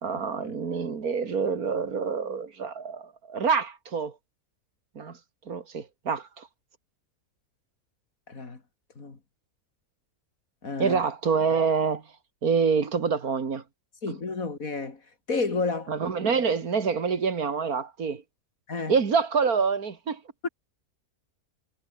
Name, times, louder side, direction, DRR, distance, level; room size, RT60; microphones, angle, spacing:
voice 1, 0.0-4.1 5.0-5.2 5.5-6.5 10.8-12.0 12.4-13.6 15.9-18.2 18.9-20.2, right 5 dB, 85° right, 2.5 m, -26 dB
voice 2, 8.3-8.6 9.0-9.2 10.6-11.0 14.0-15.0 15.3-15.9 18.7-19.0 20.4-20.5, left 4 dB, 70° left, 3.4 m, -30 dB
omnidirectional pair, 1.5 m